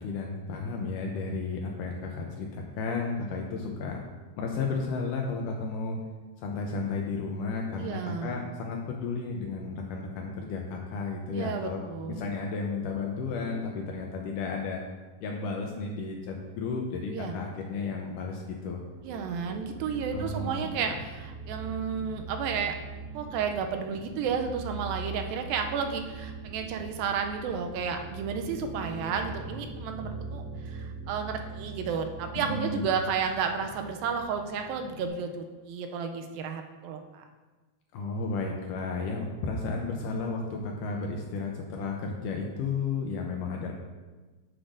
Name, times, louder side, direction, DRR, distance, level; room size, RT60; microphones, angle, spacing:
voice 1, 0.0-4.0 4.4-6.0 6.4-11.8 12.2-14.8 15.2-18.8 20.1-20.9 32.4-32.9 37.9-43.7, left 4 dB, 80° left, 1 dB, 2.0 m, -33 dB
voice 2, 7.8-8.4 11.3-12.2 17.1-17.4 19.0-22.8 23.1-37.2, right 6 dB, 80° right, 5 dB, 2.3 m, -32 dB
sound 1, 18.9-35.1, right 4 dB, 50° right, 3.1 m, -41 dB
9.6 x 7.9 x 2.6 m, 1.3 s
omnidirectional pair, 4.3 m